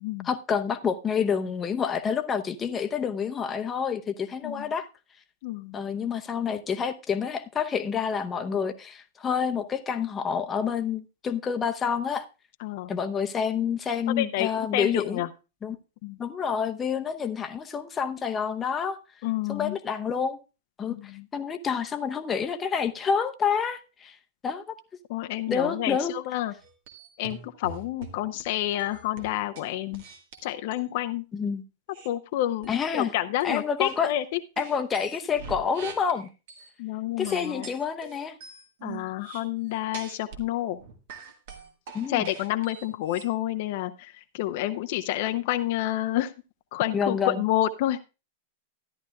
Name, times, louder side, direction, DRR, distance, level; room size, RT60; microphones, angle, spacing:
voice 1, 0.2-4.9 5.7-12.2 12.9-15.2 15.6-15.8 16.2-19.0 19.5-20.4 20.8-21.0 21.3-24.1 24.4-24.6 25.5-26.1 31.3-31.6 32.7-33.1 33.4-34.1 34.6-36.3 37.2-38.4 41.9-42.2 46.9-47.4, left 6 dB, 25° left, 0.8 m, -28 dB
voice 2, 5.4-5.8 12.6-12.9 14.1-15.3 16.0-16.2 19.2-19.8 21.0-21.3 25.1-26.5 27.2-30.0 30.4-31.2 32.0-34.4 36.8-37.7 38.8-40.8 42.1-46.3 46.7-48.0, left 14 dB, 55° left, 0.6 m, -29 dB
sound 1, 26.6-28.4 28.8-30.9 31.9-32.1 32.6-33.0 33.4-34.0 34.6-36.7 37.2-40.5 40.8-43.3, right 6 dB, 60° right, 1.5 m, -44 dB
13.5 x 10.5 x 2.3 m
hypercardioid pair, 105°, 0 cm